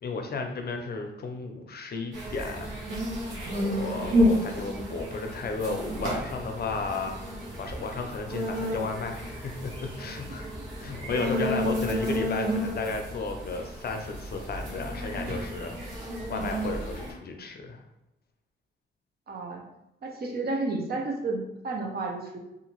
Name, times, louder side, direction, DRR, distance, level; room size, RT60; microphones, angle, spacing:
voice 1, 0.0-2.7 3.5-10.5 10.8-17.8, left 3 dB, 55° left, 4 dB, 0.5 m, -34 dB
sound 1, 2.1-17.1, equal, 80° right, 1.0 m, -31 dB
voice 2, 3.5-3.8 11.0-11.3 19.3-19.6 20.0-22.4, right 3 dB, 55° right, 2 dB, 0.7 m, -32 dB
2.8 x 2.4 x 2.9 m, 0.91 s
cardioid pair, 70°, 20 cm